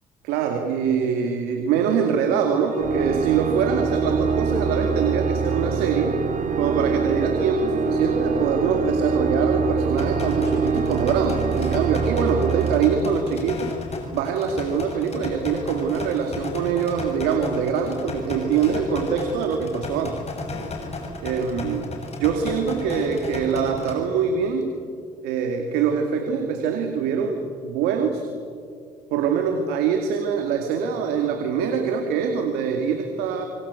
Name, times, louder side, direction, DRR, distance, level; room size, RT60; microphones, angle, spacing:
voice 1, 0.2-6.2 6.6-13.7 14.1-20.2 21.2-21.9 22.2-24.7 25.2-28.3 29.1-33.4, right 6 dB, 90° right, 4 dB, 2.4 m, -24 dB
Organ, 2.7-13.7, right 5 dB, 55° right, 2.7 m, -24 dB
sound 1, 10.0-24.0, left 3 dB, 40° left, 7.2 m, -34 dB
27.5 x 24.5 x 8.4 m, 2.3 s
supercardioid pair, 75°, 16 cm